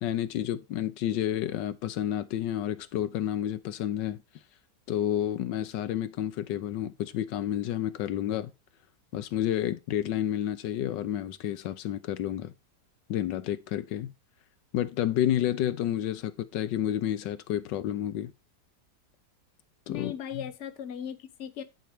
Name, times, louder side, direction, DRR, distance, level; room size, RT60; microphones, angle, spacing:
voice 1, 0.0-4.2 4.9-8.5 9.1-12.5 13.1-14.1 14.7-18.3 19.9-20.5, left 11 dB, 90° left, 1.4 m, -30 dB
voice 2, 19.9-21.6, left 9 dB, 50° left, 1.2 m, -37 dB
10.5 x 4.4 x 5.1 m
omnidirectional pair, 1.9 m